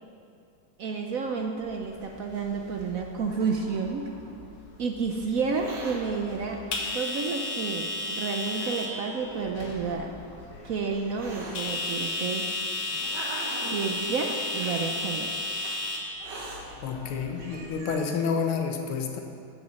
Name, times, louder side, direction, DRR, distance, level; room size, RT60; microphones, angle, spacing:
voice 1, 0.8-4.0 4.8-6.6 6.9-10.1 10.6-12.5 13.6-15.3, right 5 dB, 75° right, 2 dB, 0.7 m, -30 dB
sound 1, 1.7-17.8, left 2 dB, 50° left, 1.6 m, -35 dB
Hiss, 2.8-4.4 5.4-6.0 6.9-7.0 7.9-8.0 8.5-9.5 10.4-11.6 12.4-13.9 14.5-14.9 15.6-15.7 16.2-16.6 17.1-17.2 17.4-18.1, right 2 dB, 55° right, 2.1 m, -42 dB
voice 2, 16.8-19.2, left 5 dB, 90° left, 3 dB, 1.9 m, -29 dB
9.7 x 7.9 x 6.9 m, 2.4 s
omnidirectional pair, 2.3 m